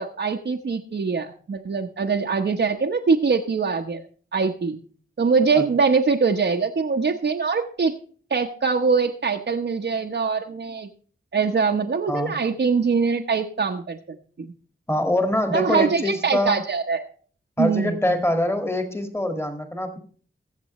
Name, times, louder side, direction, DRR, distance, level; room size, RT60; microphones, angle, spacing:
voice 1, 0.0-4.0 4.3-4.8 5.2-7.9 8.3-10.9 11.3-14.5 15.5-17.0 17.6-18.0, right 5 dB, 60° right, 1 dB, 1.0 m, -23 dB
voice 2, 14.9-16.6 17.6-20.0, left 1 dB, 10° left, 6 dB, 1.9 m, -24 dB
22.0 x 7.7 x 3.1 m, 0.43 s
wide cardioid pair, 125°, 21 cm